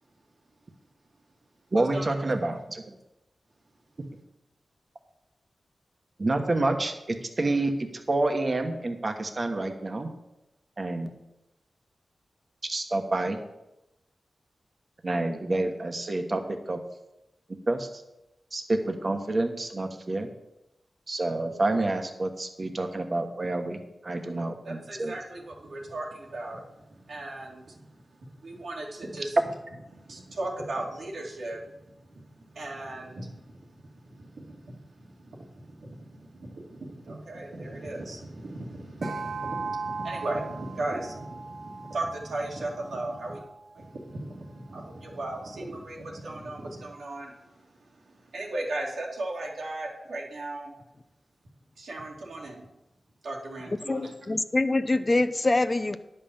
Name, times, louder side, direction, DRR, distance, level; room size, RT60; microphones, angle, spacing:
voice 1, 1.7-2.9 4.0-4.1 6.2-7.7 8.1-10.1 10.8-11.1 12.7-13.4 15.0-16.8 17.7-17.9 18.5-20.3 21.1-25.1, right 2 dB, 45° right, 5 dB, 1.3 m, -28 dB
voice 2, 24.6-26.6 27.1-27.8 28.4-29.4 29.9-31.7 32.1-33.8 34.1-43.4 43.7-47.7 48.1-50.7 51.8-52.6 53.2-54.1, right 2 dB, 85° right, -2 dB, 2.3 m, -37 dB
sound 1, 39.0-43.6, right 4 dB, 70° right, 0.8 m, -38 dB
voice 3, 53.9-56.0, left 2 dB, 30° left, 11 dB, 0.6 m, -25 dB
10.5 x 5.6 x 7.1 m, 0.92 s
wide cardioid pair, 70°, 0 cm